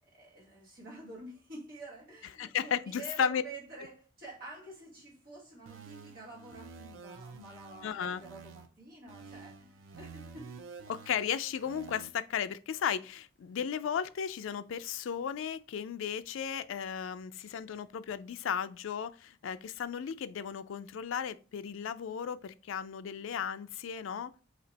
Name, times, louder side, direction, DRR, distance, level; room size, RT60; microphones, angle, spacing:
voice 1, 0.0-10.5, right 2 dB, 50° right, 1.7 m, -49 dB
voice 2, 2.4-3.4 7.8-8.2 10.9-24.3, left 7 dB, 85° left, 0.3 m, -35 dB
sound 1, 5.7-8.7 9.1-12.1, right 5 dB, 85° right, 0.6 m, -50 dB
4.2 x 2.8 x 4.0 m
head